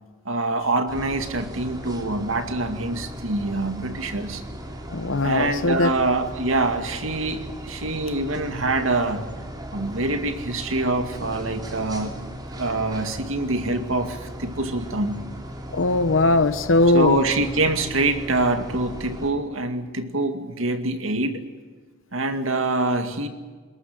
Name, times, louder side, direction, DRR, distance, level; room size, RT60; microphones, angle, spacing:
voice 1, 0.3-4.4 5.2-9.3 9.7-12.1 12.5-15.3 16.9-21.4 22.1-23.3, right 2 dB, 75° right, 2.3 m, -25 dB
sound 1, 0.9-19.3, equal, 20° right, 3.0 m, -37 dB
voice 2, 4.9-5.9 15.7-17.2, left 2 dB, 70° left, 0.9 m, -19 dB
21.5 x 20.0 x 9.2 m
head